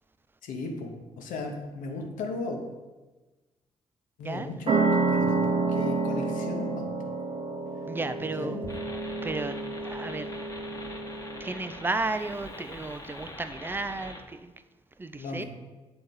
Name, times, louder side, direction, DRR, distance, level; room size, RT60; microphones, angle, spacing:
voice 1, 0.4-2.6 4.2-6.9 8.4-8.7 15.2-15.5, left 3 dB, 60° left, 3 dB, 1.0 m, -36 dB
sound 1, 4.7-11.9, right 3 dB, 40° right, 0.8 m, -29 dB
voice 2, 7.9-8.6 9.2-10.3 11.4-14.5 15.0-15.4, right 3 dB, 15° right, 10 dB, 0.4 m, -33 dB
sound 2, 8.7-14.2, left 2 dB, 20° left, 1.1 m, -43 dB
7.8 x 3.9 x 3.7 m, 1.2 s
figure-of-eight pair, 40°, 15 cm